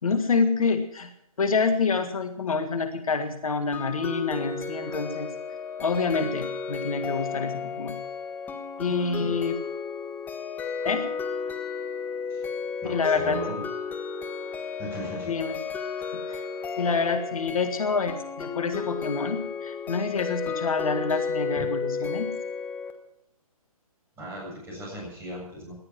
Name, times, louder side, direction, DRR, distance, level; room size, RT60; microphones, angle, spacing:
voice 1, 0.0-1.1 1.4-5.3 5.8-8.0 8.8-9.6 10.8-11.0 12.8-13.4 15.3-15.6 16.1-16.4 16.8-22.3, left 4 dB, 65° left, 8 dB, 1.8 m, -27 dB
sound 1, 3.7-22.9, left 6 dB, 10° left, 1.3 m, -33 dB
voice 2, 8.9-9.3 12.3-12.4 12.8-13.6 14.8-15.3 24.2-25.8, right 1 dB, 15° right, -2 dB, 7.7 m, -37 dB
18.0 x 12.0 x 6.1 m, 0.75 s
figure-of-eight pair, 135°, 19 cm